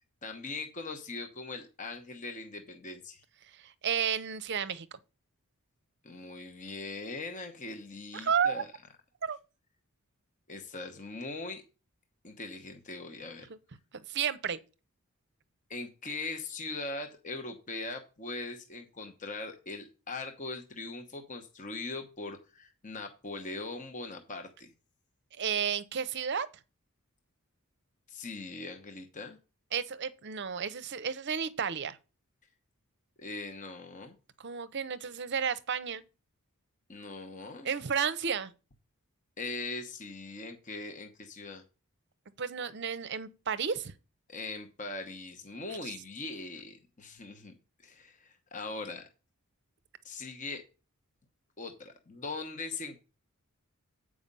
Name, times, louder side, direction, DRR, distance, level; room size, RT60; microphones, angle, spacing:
voice 1, 0.2-3.2 6.0-8.7 10.5-11.6 12.2-13.5 15.7-24.7 28.1-29.4 33.2-34.2 36.9-37.7 39.4-41.6 44.3-47.5 47.8-49.0 50.0-50.6 51.6-53.0, left 3 dB, 35° left, 1.0 m, -40 dB
voice 2, 3.5-4.9 8.1-8.6 9.2-9.4 14.1-14.6 25.4-26.5 29.7-32.0 34.4-36.0 37.6-38.5 42.4-43.9, right 7 dB, 50° right, 0.6 m, -32 dB
8.6 x 4.9 x 5.4 m
head